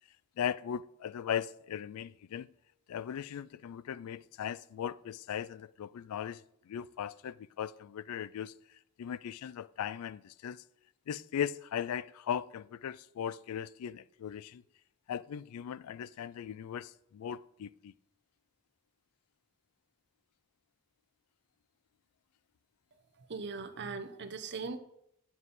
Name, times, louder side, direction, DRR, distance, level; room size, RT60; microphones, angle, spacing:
voice 1, 0.4-2.5 2.9-8.5 9.0-10.6 11.1-14.6 15.1-17.9, left 8 dB, 75° left, 0.3 m, -38 dB
voice 2, 23.2-24.8, right 4 dB, 50° right, 0.8 m, -40 dB
9.5 x 7.2 x 4.1 m
head